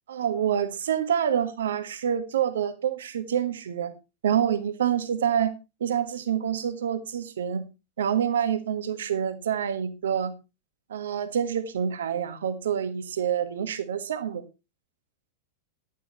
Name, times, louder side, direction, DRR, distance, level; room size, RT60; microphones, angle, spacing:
voice 1, 0.1-3.9 4.2-5.5 5.8-7.6 8.0-10.3 10.9-14.4, right 8 dB, 65° right, 1.6 m, -27 dB
11.5 x 10.0 x 4.3 m
figure-of-eight pair, 90°, 0 cm